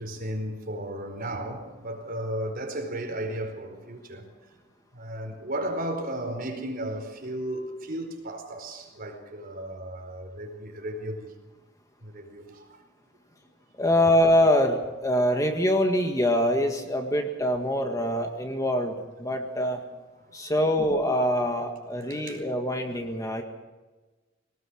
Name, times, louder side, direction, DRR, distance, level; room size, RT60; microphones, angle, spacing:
voice 1, 0.0-4.3 4.9-11.3 12.0-12.8 19.6-19.8 20.3-20.4 22.1-22.4, right 1 dB, 50° right, 4.6 m, -35 dB
voice 2, 13.8-19.8 20.3-23.4, left 1 dB, 15° left, 1.8 m, -24 dB
22.5 x 19.0 x 6.4 m
head